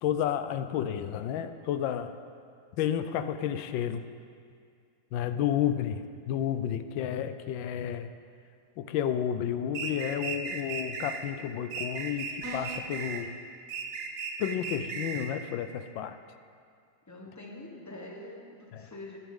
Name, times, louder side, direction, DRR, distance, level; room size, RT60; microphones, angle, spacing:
voice 1, 0.0-2.1 2.8-4.0 5.1-8.1 8.8-13.4 14.4-16.2 18.7-18.9, left 9 dB, 75° left, 10 dB, 1.2 m, -31 dB
sound 1, 9.7-11.2 11.7-13.3 13.7-15.3, right 5 dB, 75° right, 1.7 m, -36 dB
sound 2, 12.4-13.0, left 1 dB, 10° right, 1.4 m, -41 dB
voice 2, 17.1-19.2, left 2 dB, 20° left, 0 dB, 0.5 m, -45 dB
15.0 x 10.0 x 3.7 m, 2.3 s
omnidirectional pair, 2.3 m